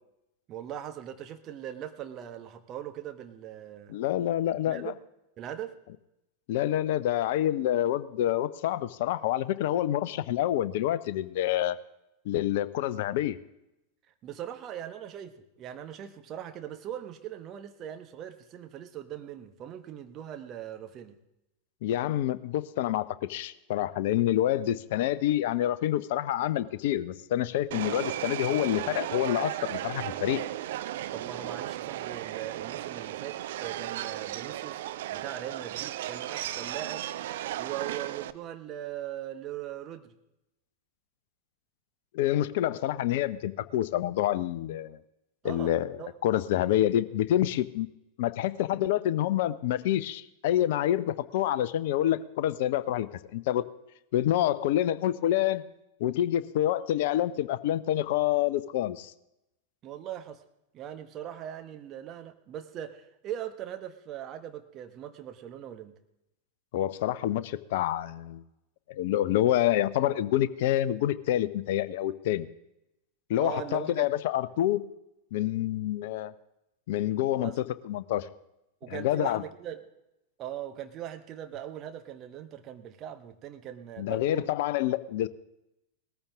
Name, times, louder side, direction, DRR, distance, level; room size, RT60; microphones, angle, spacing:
voice 1, 0.5-4.0 4.7-5.0 5.4-5.7 14.2-21.2 31.1-34.8 35.1-37.1 37.6-40.2 45.4-45.7 46.0-46.1 59.8-60.4 60.7-65.9 73.4-74.1 77.4-77.6 78.8-79.8 80.4-84.5, right 10 dB, 35° right, 7 dB, 1.3 m, -40 dB
voice 2, 3.9-4.9 6.5-11.8 12.2-13.4 21.8-30.4 42.1-45.0 45.4-47.9 48.2-53.7 54.1-55.7 56.0-59.1 66.7-68.4 68.9-72.5 73.3-74.9 75.3-76.3 76.9-78.3 78.9-79.4 84.0-85.3, left 12 dB, 50° left, 16 dB, 0.7 m, -27 dB
Subway metro underground, 27.7-38.3, right 13 dB, 55° right, 0.6 m, -35 dB
19.0 x 14.0 x 3.6 m, 0.88 s
figure-of-eight pair, 90°, 0 cm